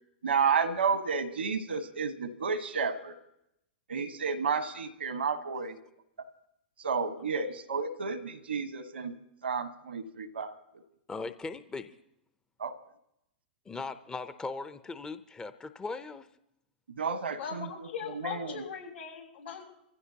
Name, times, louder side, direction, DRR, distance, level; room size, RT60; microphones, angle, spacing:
voice 1, 0.2-3.2 3.9-5.8 6.8-9.1 9.4-10.5 12.6-12.7 17.0-17.9 18.1-18.6, right 5 dB, 90° right, 9 dB, 1.3 m, -31 dB
voice 2, 11.1-11.9 13.7-16.3, left 3 dB, 15° left, 11 dB, 0.6 m, -39 dB
voice 3, 17.4-19.6, left 7 dB, 90° left, -2 dB, 6.4 m, -39 dB
24.5 x 16.0 x 2.9 m, 0.81 s
hypercardioid pair, 115°, 6 cm